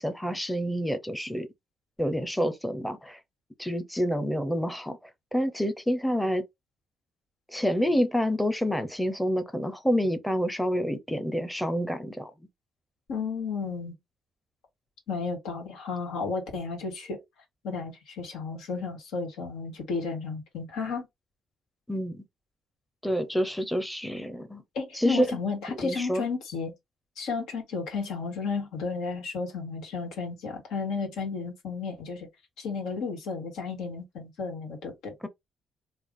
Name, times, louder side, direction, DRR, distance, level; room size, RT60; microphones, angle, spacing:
voice 1, 0.0-1.5 2.0-3.2 3.6-6.4 7.5-12.3 21.9-22.2 23.0-24.6 24.9-25.4 25.7-26.2, equal, 5° left, 0.7 m, -28 dB
voice 2, 13.1-14.0 15.1-17.2 17.6-21.1 24.7-26.7 27.2-32.3 32.6-35.1, left 4 dB, 90° left, 1.5 m, -33 dB
3.3 x 2.4 x 3.6 m
cardioid pair, 90°, 0 cm